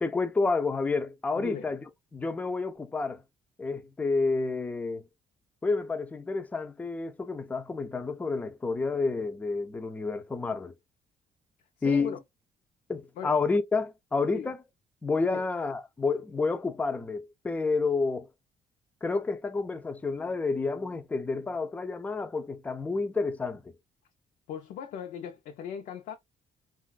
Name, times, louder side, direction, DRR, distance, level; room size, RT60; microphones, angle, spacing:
voice 1, 0.0-1.8 2.1-3.2 3.6-5.1 5.6-10.8 11.8-12.2 12.9-14.6 15.0-18.3 19.0-23.8, left 4 dB, 10° left, 0.3 m, -29 dB
voice 2, 1.4-1.7 11.8-12.2 13.2-13.3 14.3-14.5 15.3-15.5 24.5-26.1, left 8 dB, 90° left, 0.5 m, -38 dB
3.9 x 2.2 x 2.3 m
cardioid pair, 155°, 13 cm